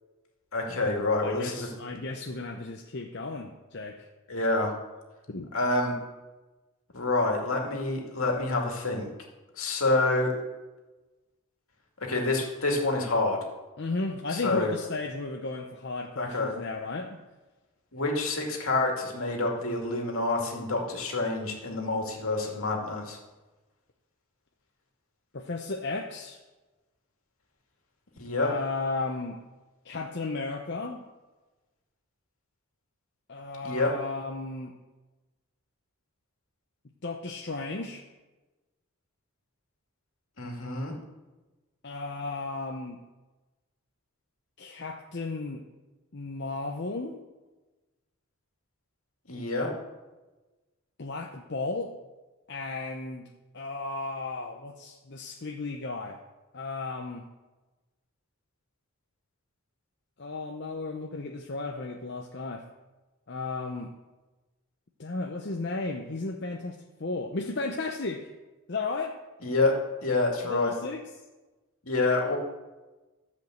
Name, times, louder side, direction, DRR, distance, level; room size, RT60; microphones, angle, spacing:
voice 1, 0.5-1.7 4.3-4.7 5.5-6.0 6.9-9.1 9.6-10.3 12.1-13.4 14.3-14.7 16.2-16.5 17.9-23.2 28.2-28.5 33.6-33.9 40.4-40.9 49.3-49.7 69.4-69.7 70.0-70.7 71.9-72.4, left 2 dB, 70° left, 1 dB, 2.4 m, -27 dB
voice 2, 1.2-4.1 5.3-5.5 13.8-17.2 25.3-26.4 28.4-29.4 29.8-31.0 33.3-34.7 37.0-38.0 41.8-43.0 44.6-45.6 46.1-47.2 51.0-51.9 52.5-53.3 53.5-56.2 56.5-57.3 60.2-62.6 63.3-63.9 65.0-68.3 68.7-69.2 70.4-71.0, left 3 dB, 50° left, 2 dB, 0.7 m, -34 dB
13.5 x 5.3 x 7.9 m, 1.2 s
head